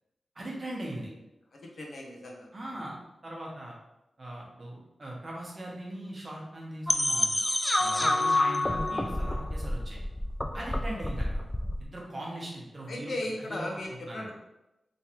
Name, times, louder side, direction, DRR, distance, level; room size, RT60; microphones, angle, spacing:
voice 1, 0.3-1.1 2.5-2.9 3.2-3.8 4.2-7.4 7.8-10.0 10.5-11.4 11.8-13.1 13.4-14.3, right 1 dB, 35° right, -3 dB, 1.0 m, -40 dB
voice 2, 1.5-2.8 8.0-8.2 12.9-14.3, left 1 dB, 65° left, 0 dB, 0.7 m, -37 dB
sound 1, 6.9-11.8, left 1 dB, 15° left, 0.3 m, -28 dB
3.3 x 3.1 x 2.9 m, 0.93 s
wide cardioid pair, 100°, 0 cm